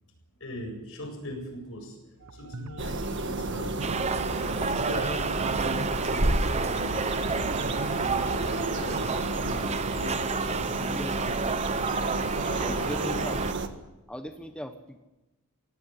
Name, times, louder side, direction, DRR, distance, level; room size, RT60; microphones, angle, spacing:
voice 1, 0.4-2.0 2.3-3.9 4.7-6.4 6.7-7.3 7.9-12.0 12.5-13.3, equal, 65° left, 4 dB, 7.5 m, -40 dB
sound 1, 2.2-8.4, right 2 dB, 75° right, 1.3 m, -41 dB
sound 2, 2.8-13.7, right 2 dB, 55° right, 1.7 m, -31 dB
sound 3, 3.8-13.5, right 4 dB, 30° right, 0.9 m, -31 dB
voice 2, 12.6-13.4 14.1-15.0, equal, 5° left, 6 dB, 1.1 m, -38 dB
26.0 x 18.0 x 8.0 m, 1.0 s
head